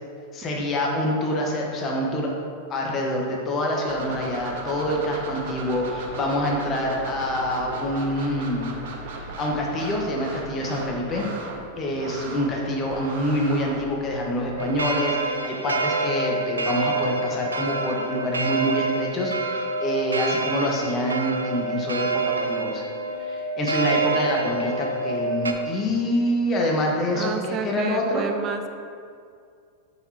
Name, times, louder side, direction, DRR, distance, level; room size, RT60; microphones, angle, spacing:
voice 1, 0.3-2.3 2.7-8.7 9.2-11.3 11.8-22.9 23.3-28.3, left 1 dB, 30° left, -1 dB, 1.3 m, -26 dB
sound 1, 3.9-14.7, right 2 dB, 60° right, 0.9 m, -37 dB
sound 2, 14.6-25.5, right 3 dB, 85° right, 0.5 m, -27 dB
voice 2, 27.1-28.7, right 6 dB, 35° right, 7 dB, 0.5 m, -30 dB
7.6 x 6.2 x 2.9 m, 2.3 s
figure-of-eight pair, 90°, 0 cm